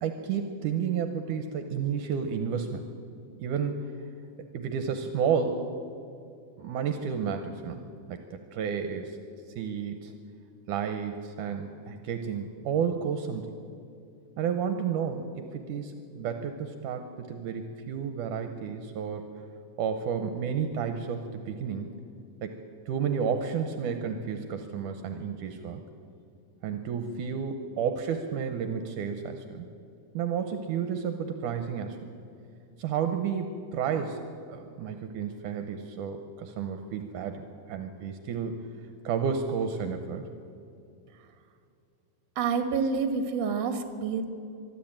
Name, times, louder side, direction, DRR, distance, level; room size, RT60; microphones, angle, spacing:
voice 1, 0.0-2.9 3.4-3.9 4.5-5.7 6.6-7.8 8.1-9.2 9.6-10.1 10.7-13.5 14.4-19.3 19.8-21.9 22.4-22.6 22.9-25.8 26.6-29.7 30.1-32.1 32.8-34.2 34.5-38.6 39.0-40.2, right 7 dB, 75° right, 7 dB, 2.4 m, -31 dB
voice 2, 42.4-44.3, right 5 dB, 55° right, 7 dB, 2.5 m, -28 dB
24.0 x 12.5 x 8.9 m, 2.5 s
omnidirectional pair, 3.7 m